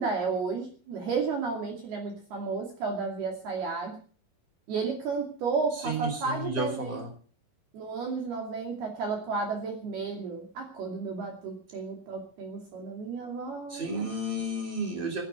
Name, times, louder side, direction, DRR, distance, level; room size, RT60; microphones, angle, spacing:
voice 1, 0.0-4.0 4.7-7.0 7.7-14.0, right 4 dB, 55° right, 2 dB, 4.2 m, -32 dB
voice 2, 5.8-7.1 13.7-15.2, right 1 dB, 10° right, 2 dB, 4.9 m, -32 dB
17.5 x 10.0 x 8.1 m, 0.42 s
omnidirectional pair, 5.6 m